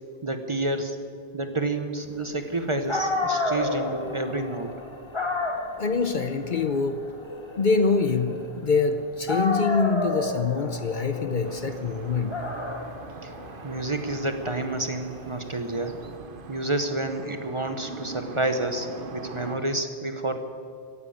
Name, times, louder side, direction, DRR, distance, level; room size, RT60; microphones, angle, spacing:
voice 1, 0.2-1.0 1.3-4.7 13.2-13.3 13.6-16.0 16.5-20.4, right 2 dB, 30° right, 7 dB, 0.9 m, -29 dB
Dog, 2.6-2.7 2.9-8.9 9.3-16.1, left 2 dB, 25° left, 1.6 m, -31 dB
voice 2, 5.8-7.0 7.6-12.3, left 4 dB, 50° left, 9 dB, 0.8 m, -25 dB
sound 1, 11.4-19.6, right 4 dB, 50° right, 1.2 m, -42 dB
15.5 x 10.5 x 8.6 m, 2.3 s
omnidirectional pair, 1.2 m